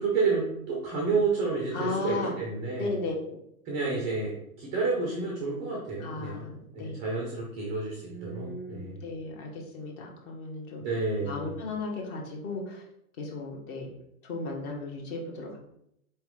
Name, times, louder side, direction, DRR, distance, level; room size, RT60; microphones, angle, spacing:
voice 1, 0.0-2.9 3.6-9.0 10.8-11.5, right 4 dB, 15° right, -2 dB, 0.4 m, -30 dB
voice 2, 1.7-2.3 2.8-3.4 4.9-5.3 6.0-7.1 8.0-10.8 11.2-12.8 13.2-13.9 14.2-15.6, left 3 dB, 35° left, 0 dB, 1.1 m, -35 dB
4.3 x 2.9 x 3.6 m, 0.77 s
figure-of-eight pair, 115°, 44 cm